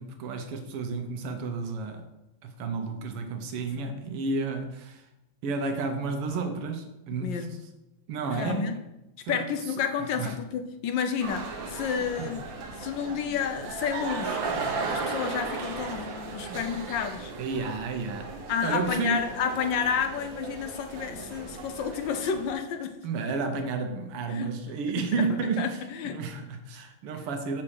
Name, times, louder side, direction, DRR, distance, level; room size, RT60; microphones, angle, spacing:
voice 1, 0.0-2.1 2.4-5.0 5.4-7.6 8.1-8.8 9.2-9.5 10.0-10.4 12.2-12.3 17.4-19.3 23.0-27.6, right 4 dB, 90° right, 1.9 m, -31 dB
voice 2, 7.2-7.6 8.3-8.8 9.3-12.4 12.8-14.4 14.8-17.3 18.5-23.0 24.3-24.8 25.2-26.2, left 7 dB, 70° left, 1.2 m, -31 dB
sound 1, 11.2-22.5, right 4 dB, 65° right, 1.7 m, -36 dB
7.3 x 4.3 x 6.5 m
omnidirectional pair, 2.4 m